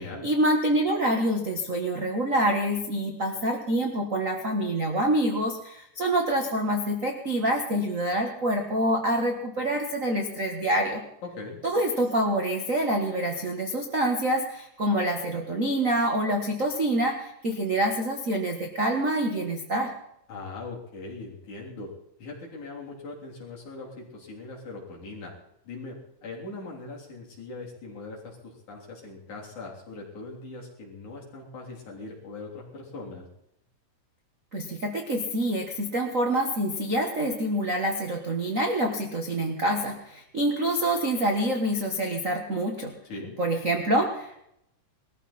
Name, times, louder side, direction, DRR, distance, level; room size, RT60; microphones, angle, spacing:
voice 1, 0.2-11.0 11.6-19.9 34.5-42.9 43.4-44.4, right 1 dB, 40° right, 2 dB, 1.1 m, -26 dB
voice 2, 11.2-11.6 20.3-21.9 22.2-25.3 25.6-26.0 26.2-33.3 43.0-43.3, left 3 dB, 60° left, -3 dB, 4.8 m, -40 dB
20.0 x 14.0 x 4.3 m, 0.77 s
omnidirectional pair, 3.8 m